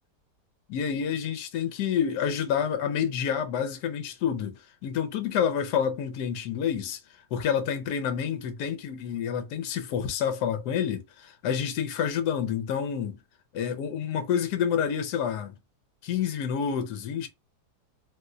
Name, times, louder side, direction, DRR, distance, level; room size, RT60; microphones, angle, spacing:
voice 1, 0.7-7.0 7.3-13.2 13.5-15.6 16.0-17.3, left 8 dB, 75° left, 1.1 m, -28 dB
2.9 x 2.1 x 3.6 m
omnidirectional pair, 1.8 m